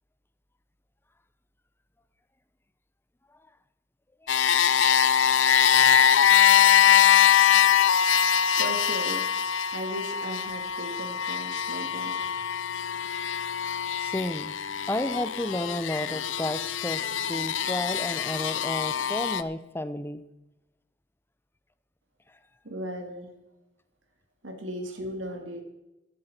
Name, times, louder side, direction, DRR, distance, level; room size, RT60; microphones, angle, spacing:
sound 1, 4.3-19.4, left 9 dB, 80° left, 0.7 m, -23 dB
voice 1, 8.6-9.3 9.7-12.3 22.6-23.3 24.4-25.6, equal, 80° right, 4 dB, 2.1 m, -36 dB
voice 2, 14.0-14.5 14.9-20.2, left 1 dB, 10° left, 13 dB, 0.7 m, -32 dB
14.5 x 12.0 x 4.4 m, 0.97 s
head